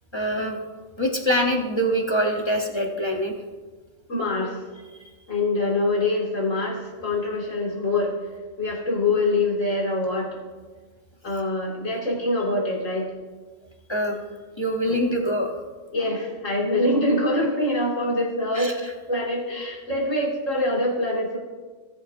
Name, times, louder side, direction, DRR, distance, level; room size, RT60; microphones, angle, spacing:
voice 1, 0.1-0.6 1.0-3.3 4.9-5.0 13.9-14.2 14.6-15.5 18.5-18.9, equal, 25° left, 1 dB, 1.0 m, -24 dB
voice 2, 4.1-4.5 5.3-8.1 8.6-10.3 11.2-13.1 14.9-15.0 15.9-18.7 19.1-21.4, left 2 dB, 85° left, -3 dB, 2.9 m, -24 dB
18.0 x 7.7 x 2.7 m, 1.4 s
omnidirectional pair, 1.3 m